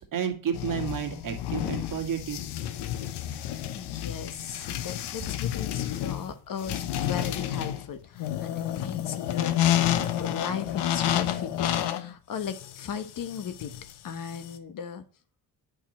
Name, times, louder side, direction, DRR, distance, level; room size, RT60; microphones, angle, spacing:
voice 1, 0.0-2.4, right 7 dB, 55° right, 4 dB, 2.0 m, -31 dB
sound 1, 0.5-14.6, left 11 dB, 85° left, 1.0 m, -30 dB
voice 2, 3.1-13.7 14.0-15.0, left 7 dB, 55° left, 10 dB, 1.3 m, -37 dB
8.8 x 5.4 x 4.3 m, 0.39 s
cardioid pair, 115°, 40 cm